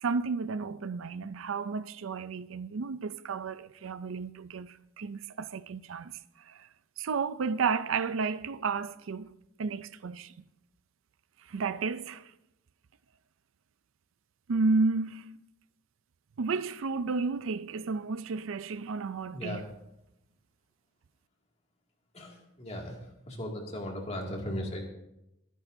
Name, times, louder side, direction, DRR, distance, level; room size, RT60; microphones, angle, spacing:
voice 1, 0.0-6.7 7.0-9.3 9.6-10.5 11.5-12.3 14.5-15.3 16.4-19.7, right 4 dB, 75° right, 0.5 m, -32 dB
voice 2, 22.1-23.0 23.3-24.9, left 1 dB, 30° left, 2.3 m, -37 dB
23.0 x 10.0 x 2.7 m
head